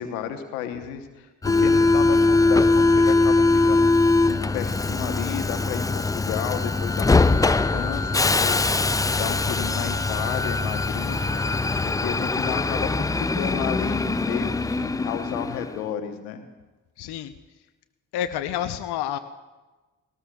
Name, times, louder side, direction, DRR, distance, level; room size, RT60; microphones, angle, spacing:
voice 1, 0.0-8.6 9.1-11.2 11.8-16.4, left 9 dB, 85° left, 7 dB, 1.0 m, -32 dB
Subway metro underground, 1.4-15.8, left 3 dB, 10° left, 0.3 m, -22 dB
sound 1, 7.1-13.6, equal, 40° right, 6.2 m, -42 dB
voice 2, 17.0-17.3 18.1-19.2, left 11 dB, 65° left, 9 dB, 0.8 m, -28 dB
20.0 x 18.5 x 2.3 m, 1.2 s
hypercardioid pair, 45°, 42 cm